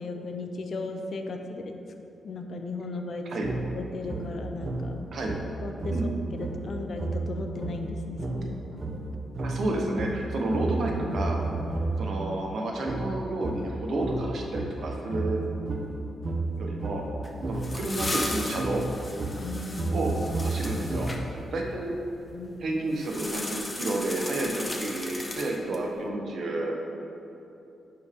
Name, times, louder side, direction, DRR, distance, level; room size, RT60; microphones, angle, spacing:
voice 1, 0.0-1.7 2.2-3.2 3.7-4.9 5.6-5.9 6.3-8.8 19.4-20.1 22.3-22.6, left 3 dB, 55° left, 4 dB, 0.7 m, -36 dB
sound 1, 3.4-12.2 12.8-21.5, right 2 dB, 40° right, 0.8 m, -32 dB
voice 2, 9.4-11.4 12.0-15.4 16.6-17.0 17.5-18.8 19.9-21.1 21.5-21.9 22.6-26.8, right 2 dB, 60° right, 0 dB, 1.1 m, -30 dB
sound 2, 17.2-21.2 23.0-25.9, left 2 dB, 20° left, 0.7 m, -36 dB
10.5 x 4.5 x 3.6 m, 2.8 s
cardioid pair, 105°, 0 cm